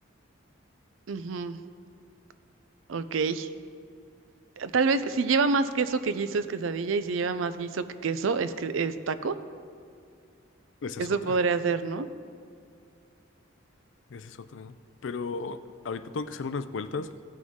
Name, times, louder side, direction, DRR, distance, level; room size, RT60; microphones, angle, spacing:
voice 1, 1.1-1.6 2.9-3.5 4.6-9.3 11.0-12.1, right 4 dB, 80° right, 12 dB, 0.5 m, -27 dB
voice 2, 10.8-11.4 14.1-14.8 15.0-15.6 15.8-17.1, left 4 dB, 70° left, 12 dB, 0.4 m, -35 dB
16.0 x 6.2 x 3.7 m, 2.3 s
head